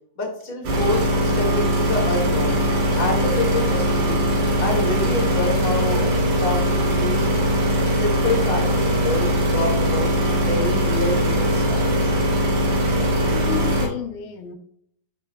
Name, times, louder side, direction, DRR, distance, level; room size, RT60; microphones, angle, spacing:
voice 1, 0.2-2.6 2.9-4.3 4.6-7.3 7.8-10.1 10.4-12.2, left 2 dB, 30° left, -4 dB, 1.0 m, -27 dB
sound 1, 0.6-13.9, equal, 80° right, 4.6 m, -21 dB
voice 2, 12.9-14.6, left 9 dB, 80° left, 6 dB, 2.6 m, -32 dB
10.5 x 4.3 x 2.3 m, 0.68 s
omnidirectional pair, 4.4 m